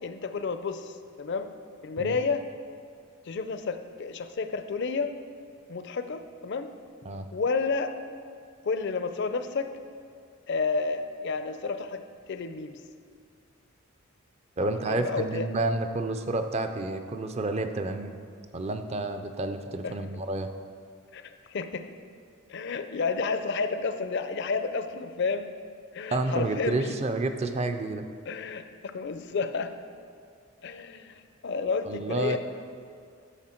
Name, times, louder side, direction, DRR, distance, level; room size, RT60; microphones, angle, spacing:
voice 1, 0.0-1.5 1.8-2.4 3.2-5.1 5.7-6.7 7.3-7.9 8.6-9.7 10.5-12.0 12.3-12.8 14.6-15.5 19.8-20.2 21.1-21.9 22.5-25.5 25.9-27.0 28.3-29.7 30.6-32.4, left 4 dB, 55° left, 9 dB, 0.5 m, -31 dB
voice 2, 14.6-18.2 18.5-20.5 26.1-28.1 31.9-32.4, right 2 dB, 30° right, 8 dB, 0.4 m, -30 dB
9.9 x 6.6 x 4.4 m, 2.2 s
head